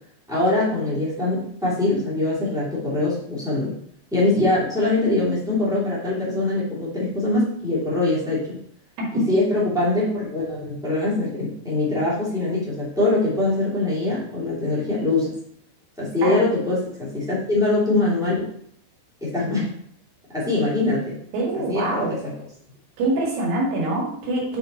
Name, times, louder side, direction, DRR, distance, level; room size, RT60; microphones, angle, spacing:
voice 1, 0.3-3.7 4.1-8.6 9.3-15.3 16.0-18.5 19.2-19.7 20.3-21.1 21.7-22.3, left 2 dB, 5° right, -9 dB, 0.4 m, -23 dB
voice 2, 21.3-22.2 23.0-24.6, right 2 dB, 65° right, -3 dB, 3.7 m, -24 dB
8.3 x 4.3 x 3.9 m, 0.65 s
omnidirectional pair, 5.4 m